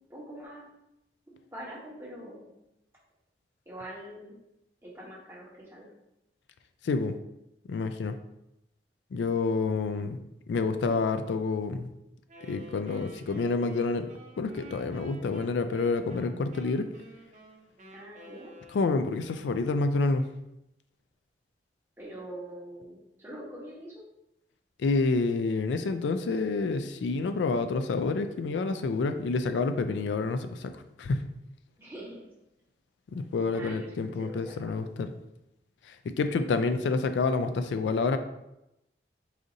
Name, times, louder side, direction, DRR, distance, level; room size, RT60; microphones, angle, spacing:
voice 1, 0.1-0.7 1.3-2.5 3.6-4.4 4.8-5.9 17.9-18.5 22.0-24.0 31.8-32.3 33.5-34.8, right 1 dB, 15° right, -5 dB, 1.1 m, -44 dB
voice 2, 6.8-7.1 7.7-8.2 9.1-10.2 10.5-11.9 12.5-14.1 14.4-16.9 18.7-20.3 24.8-30.7 31.0-31.2 33.1-35.1 35.8-38.2, left 3 dB, 85° left, 9 dB, 0.3 m, -28 dB
Wind instrument woodwind instrument, 12.3-19.2, right 1 dB, 40° right, 0.7 m, -51 dB
4.9 x 2.6 x 3.8 m, 0.87 s
head